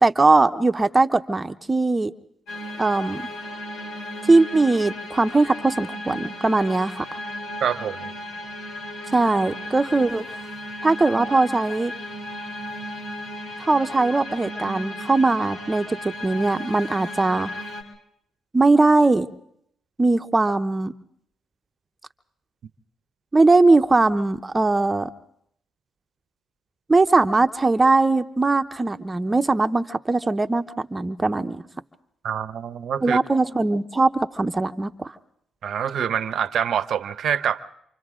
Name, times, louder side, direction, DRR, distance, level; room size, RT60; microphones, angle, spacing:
voice 1, 0.0-2.1 2.8-3.3 4.3-7.0 9.1-10.2 10.8-11.9 13.6-17.5 18.5-19.3 20.0-20.9 23.3-25.1 26.9-31.6 33.0-35.1, right 3 dB, 25° right, 8 dB, 0.9 m, -20 dB
sound 1, 2.5-17.8, left 1 dB, 80° left, 3.9 m, -35 dB
voice 2, 7.6-8.1 32.2-33.2 35.6-37.6, right 8 dB, 70° right, 14 dB, 0.8 m, -25 dB
28.5 x 26.5 x 3.7 m, 0.72 s
supercardioid pair, 50°, 0 cm